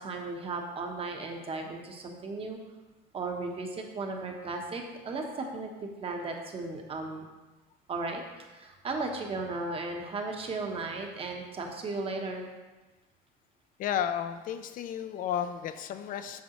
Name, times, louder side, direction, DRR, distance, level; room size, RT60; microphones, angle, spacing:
voice 1, 0.0-2.6 3.1-7.2 7.9-12.5, right 3 dB, 35° right, 2 dB, 1.1 m, -36 dB
voice 2, 13.8-16.4, left 9 dB, 55° left, 10 dB, 0.5 m, -33 dB
7.2 x 5.4 x 3.1 m, 1.2 s
supercardioid pair, 105°, 17 cm